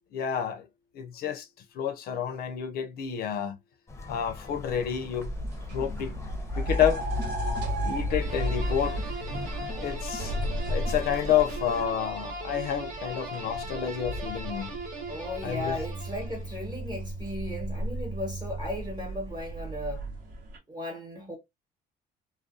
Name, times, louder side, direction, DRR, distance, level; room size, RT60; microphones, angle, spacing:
voice 1, 0.1-0.7 0.9-1.5 1.7-3.6 4.1-5.3 5.7-6.2 6.6-7.0 7.8-9.0 9.8-10.3 10.7-14.7 15.4-15.8, left 9 dB, 65° left, 0.5 m, -29 dB
sound 1, 3.9-11.9, left 2 dB, 15° left, 0.6 m, -43 dB
sound 2, 4.9-20.6, equal, 75° right, 1.0 m, -34 dB
sound 3, 8.2-16.5, right 1 dB, 50° right, 1.0 m, -39 dB
voice 2, 9.3-9.9 15.1-20.0 20.7-21.4, left 1 dB, 25° right, 1.0 m, -36 dB
2.3 x 2.2 x 2.5 m
cardioid pair, 110°, 17 cm